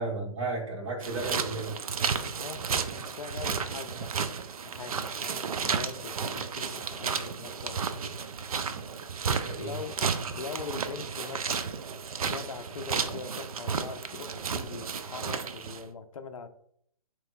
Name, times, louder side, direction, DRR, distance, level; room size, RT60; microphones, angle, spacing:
voice 1, 0.0-1.8 9.4-9.7, right 3 dB, 50° right, -1 dB, 1.3 m, -33 dB
sound 1, 1.0-15.8, right 6 dB, 70° right, 0.4 m, -33 dB
voice 2, 2.3-4.1 4.6-8.2 9.6-10.0 10.4-11.8 12.2-16.5, left 5 dB, 65° left, 9 dB, 0.5 m, -42 dB
4.1 x 3.0 x 2.4 m, 0.66 s
figure-of-eight pair, 130°, 19 cm